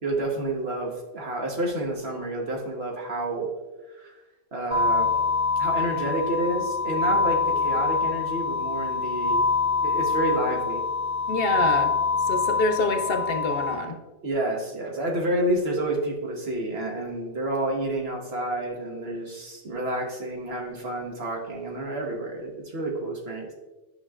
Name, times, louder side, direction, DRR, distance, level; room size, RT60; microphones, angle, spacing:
voice 1, 0.0-3.5 3.9-4.2 4.5-5.1 5.6-9.4 9.8-10.9 14.2-23.5, right 1 dB, 65° right, 0 dB, 1.4 m, -29 dB
sound 1, 4.7-13.7, left 4 dB, 10° right, 0.4 m, -25 dB
voice 2, 11.3-11.9 12.3-14.0, left 3 dB, 60° left, 6 dB, 0.8 m, -26 dB
9.9 x 5.9 x 2.4 m, 1.2 s
omnidirectional pair, 1.2 m